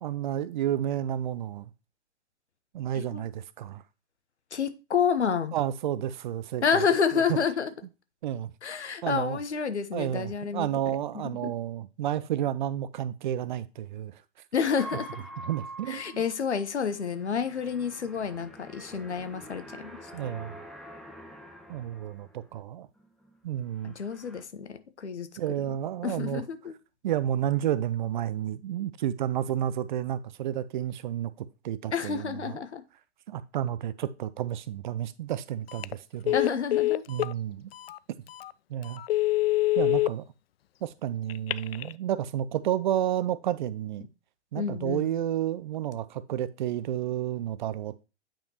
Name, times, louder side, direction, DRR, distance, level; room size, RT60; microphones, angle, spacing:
voice 1, 0.0-1.7 2.7-3.8 5.5-6.6 7.1-7.4 8.2-8.5 9.0-9.4 9.9-14.1 15.4-16.2 20.1-20.6 21.7-22.9 23.4-23.9 25.4-26.4 27.0-32.6 33.3-36.3 37.1-37.7 38.7-39.0 39.8-40.2 40.8-44.1 44.5-48.0, right 11 dB, 45° right, 0.5 m, -31 dB
voice 2, 4.5-5.6 6.6-7.7 8.6-10.7 11.1-11.5 14.5-15.1 15.9-20.0 23.8-25.3 26.0-26.7 31.9-32.8 36.3-37.0 44.5-45.1, left 6 dB, 75° left, 1.1 m, -29 dB
sound 1, 14.8-22.6 23.0-23.4 23.7-24.4, right 1 dB, ahead, 0.7 m, -46 dB
Telephone, 35.7-35.9 36.3-37.3 37.9-38.0 38.4-38.5 39.0-40.1 41.3-41.9, left 17 dB, 60° left, 0.4 m, -25 dB
8.8 x 5.1 x 2.9 m
figure-of-eight pair, 115°, 35 cm